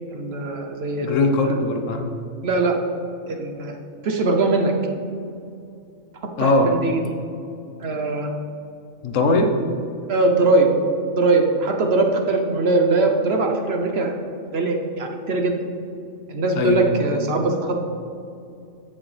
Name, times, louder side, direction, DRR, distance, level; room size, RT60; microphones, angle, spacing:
voice 1, 0.1-1.2 1.4-1.6 2.4-2.8 3.3-3.8 4.0-4.7 6.4-7.1 7.8-8.3 10.1-10.7 11.1-14.1 14.5-15.6 16.3-17.8, right 3 dB, 55° right, 3 dB, 0.9 m, -21 dB
voice 2, 1.0-2.1 6.4-6.7 9.0-9.5 16.5-17.0, left 2 dB, 70° left, 5 dB, 1.1 m, -20 dB
14.5 x 6.1 x 3.3 m, 2.5 s
omnidirectional pair, 1.4 m